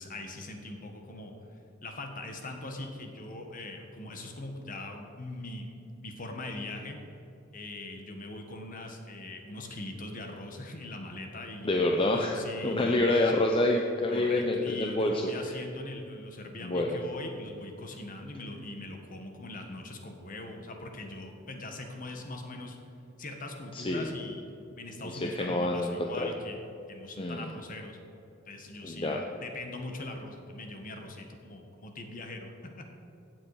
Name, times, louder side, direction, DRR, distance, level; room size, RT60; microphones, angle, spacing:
voice 1, 0.0-1.3 1.8-5.7 6.0-7.0 7.5-13.3 14.1-22.8 23.2-24.4 24.8-26.6 26.9-28.0 28.5-32.9, left 2 dB, 45° left, 3 dB, 1.5 m, -41 dB
voice 2, 11.6-15.5 16.6-17.0 23.7-24.1 25.0-26.3 27.2-27.5 28.8-29.2, left 1 dB, 30° left, 1 dB, 0.7 m, -28 dB
16.0 x 7.7 x 4.9 m, 2.8 s
head